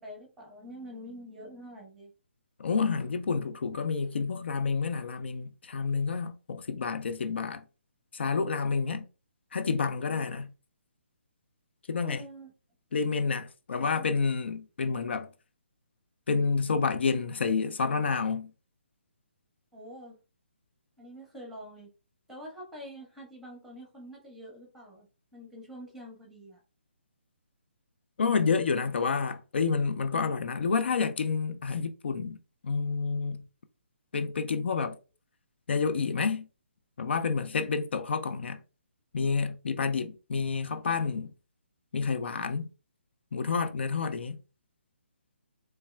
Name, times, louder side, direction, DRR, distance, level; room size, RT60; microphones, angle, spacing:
voice 1, 0.0-2.1 12.0-12.5 13.7-14.1 19.7-20.2 21.0-21.9 22.3-25.1 25.3-26.6, equal, 5° right, 1.4 m, -46 dB
voice 2, 2.6-7.6 8.1-9.0 9.5-10.5 11.9-12.2 12.9-15.3 16.3-18.5 28.2-32.4 32.6-33.4 34.1-35.0 35.7-36.5 37.0-38.6 39.1-41.3 41.9-42.7 43.3-44.4, left 5 dB, 65° left, 0.5 m, -29 dB
4.1 x 3.2 x 2.3 m
hypercardioid pair, 150°, 6 cm